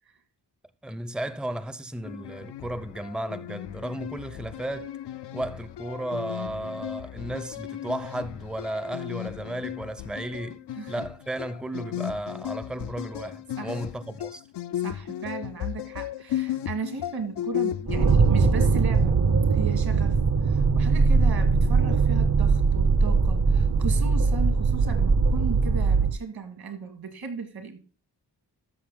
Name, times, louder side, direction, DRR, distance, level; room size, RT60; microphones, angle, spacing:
voice 1, 0.8-5.0 5.3-14.4, right 1 dB, ahead, 0.6 m, -34 dB
sound 1, 2.0-19.2, left 12 dB, 75° left, 0.6 m, -35 dB
voice 2, 14.8-19.2 19.5-27.8, right 5 dB, 65° right, 2.0 m, -36 dB
sound 2, 17.9-26.1, right 4 dB, 45° right, 0.8 m, -21 dB
13.0 x 6.7 x 3.7 m
wide cardioid pair, 145°, 41 cm